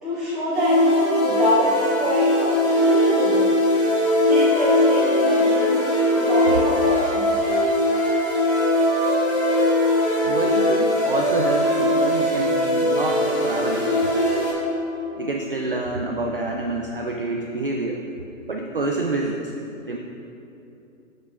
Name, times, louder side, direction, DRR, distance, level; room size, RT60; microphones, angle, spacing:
voice 1, 0.0-3.8 4.3-5.8 6.1-7.5, equal, ahead, -18 dB, 1.8 m, -25 dB
sound 1, 0.5-14.5, left 1 dB, 40° left, 1.9 m, -20 dB
Wind instrument woodwind instrument, 4.4-11.3, equal, 20° left, 1.0 m, -30 dB
voice 2, 10.3-13.9 15.2-18.0 18.5-19.5 19.9-20.0, right 2 dB, 45° right, 0 dB, 0.4 m, -27 dB
12.5 x 7.4 x 2.4 m, 2.9 s
hypercardioid pair, 175°, 41 cm